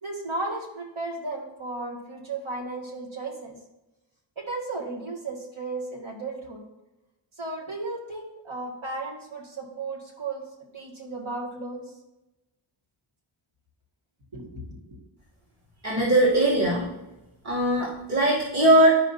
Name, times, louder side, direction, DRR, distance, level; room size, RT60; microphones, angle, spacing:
voice 1, 0.0-3.6 4.4-6.6 7.4-10.4 10.7-11.9 14.3-15.0, right 2 dB, 70° right, -2 dB, 2.1 m, -34 dB
voice 2, 15.8-16.9 17.4-18.9, right 1 dB, 35° right, -7 dB, 2.5 m, -20 dB
12.5 x 4.9 x 2.7 m, 0.98 s
wide cardioid pair, 75°, 49 cm